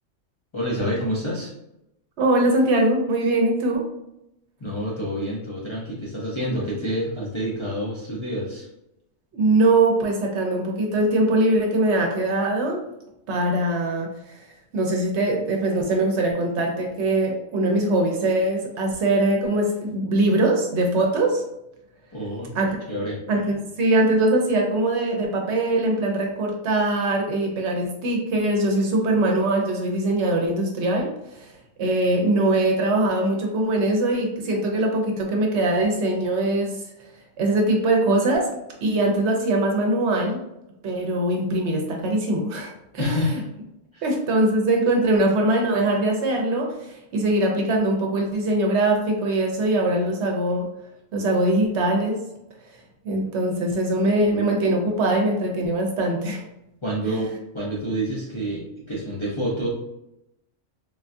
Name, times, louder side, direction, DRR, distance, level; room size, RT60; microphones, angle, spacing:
voice 1, 0.5-1.5 4.6-8.7 22.1-22.5 22.9-23.2 43.0-43.3 43.9-44.0 56.8-59.7, equal, 35° left, -6 dB, 0.5 m, -28 dB
voice 2, 2.2-3.8 9.3-12.8 13.3-14.4 14.7-21.4 22.5-22.8 23.3-31.5 31.8-36.8 37.4-38.5 38.8-40.4 40.8-43.3 44.0-50.7 51.1-52.2 53.0-56.4 57.1-57.2, right 2 dB, 65° right, 1 dB, 0.9 m, -22 dB
3.6 x 2.3 x 2.5 m, 0.86 s
omnidirectional pair, 1.3 m